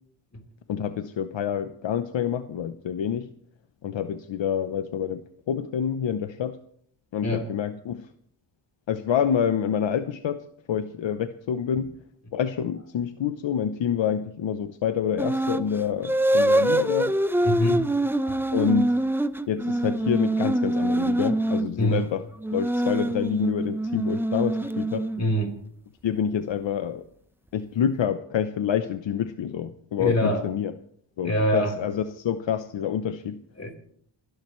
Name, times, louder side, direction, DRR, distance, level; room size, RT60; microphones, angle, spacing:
voice 1, 0.7-3.3 3.8-6.6 7.1-8.1 8.9-11.9 12.3-17.1 18.5-18.9 19.5-22.2 22.5-25.1 26.0-27.0 27.5-30.7 31.2-33.4, left 8 dB, 70° left, 10 dB, 0.8 m, -27 dB
sound 1, 15.2-15.7 16.0-21.7 22.4-25.4, right 1 dB, 5° right, 0.6 m, -24 dB
voice 2, 17.4-17.9 18.2-18.4 21.8-22.1 25.2-25.6 30.0-30.4 31.2-31.7 33.6-33.7, equal, 35° left, 2 dB, 3.8 m, -24 dB
29.0 x 11.5 x 3.1 m, 0.64 s
cardioid pair, 90°, 46 cm